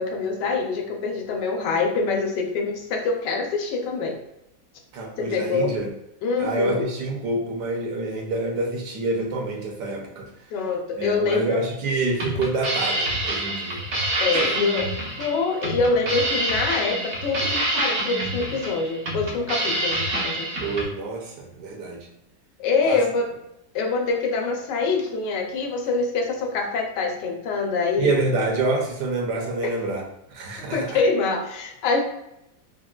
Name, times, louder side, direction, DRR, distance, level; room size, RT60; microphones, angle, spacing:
voice 1, 0.0-4.2 5.2-5.8 6.2-6.9 10.5-11.6 14.2-20.5 22.6-23.3 23.7-28.1 30.7-32.0, left 4 dB, 85° left, 2 dB, 1.2 m, -25 dB
voice 2, 4.9-5.9 6.4-10.3 11.0-13.9 20.6-22.1 22.8-23.0 28.0-30.0 30.3-31.0, right 2 dB, 75° right, 1 dB, 1.2 m, -27 dB
sound 1, 12.0-20.9, right 1 dB, 60° right, 0.6 m, -27 dB
3.6 x 2.1 x 2.2 m, 0.84 s
omnidirectional pair, 1.8 m